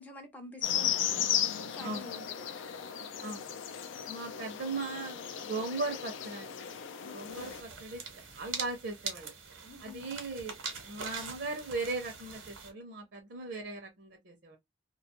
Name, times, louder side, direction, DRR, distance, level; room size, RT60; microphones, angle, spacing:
voice 1, 0.0-2.6 7.0-7.6 9.6-10.1, left 2 dB, 10° left, 0.4 m, -49 dB
sound 1, 0.6-7.6, left 9 dB, 70° left, 0.4 m, -35 dB
voice 2, 4.1-6.8 7.1-8.0 8.3-9.3 9.8-14.6, right 3 dB, 55° right, 0.6 m, -38 dB
sound 2, 7.3-12.7, right 5 dB, 85° right, 0.9 m, -43 dB
2.3 x 2.2 x 2.8 m
head